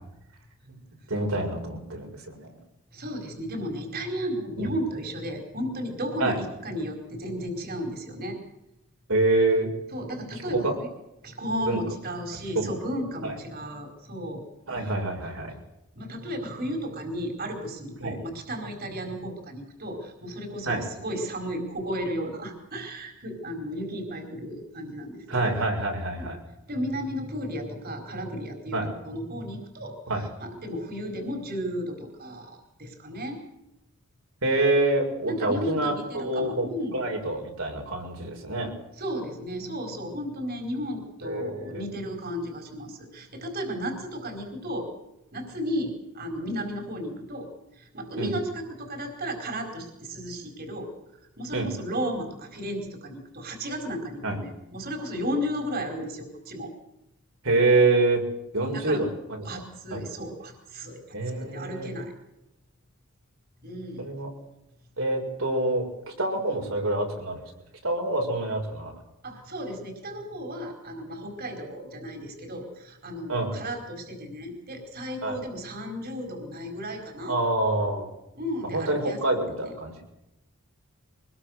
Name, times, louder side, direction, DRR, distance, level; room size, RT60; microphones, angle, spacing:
voice 1, 1.1-2.6 4.6-4.7 6.2-6.4 9.1-9.7 10.5-10.7 11.6-11.8 12.5-12.7 13.2-13.3 14.7-15.5 18.0-18.2 20.6-20.8 25.3-26.4 28.7-28.9 30.1-30.2 34.4-36.7 36.9-38.7 41.2-41.9 48.2-48.3 51.5-51.7 54.2-54.4 57.4-58.2 58.5-59.4 59.9-60.0 61.1-61.9 64.0-64.3 65.0-67.4 67.8-68.9 73.3-73.6 75.2-75.4 77.3-78.1 78.7-80.0, right 2 dB, 70° right, 1 dB, 6.7 m, -26 dB
voice 2, 2.9-8.4 9.9-10.9 11.2-14.4 14.8-14.9 15.9-25.5 26.1-26.3 26.7-33.4 35.3-37.0 38.9-44.9 45.3-50.9 51.4-56.7 58.7-59.1 59.4-62.1 63.6-64.1 69.2-77.4 78.3-79.2 79.6-79.7, equal, 45° right, 4 dB, 4.7 m, -34 dB
24.5 x 21.5 x 6.6 m, 0.89 s
head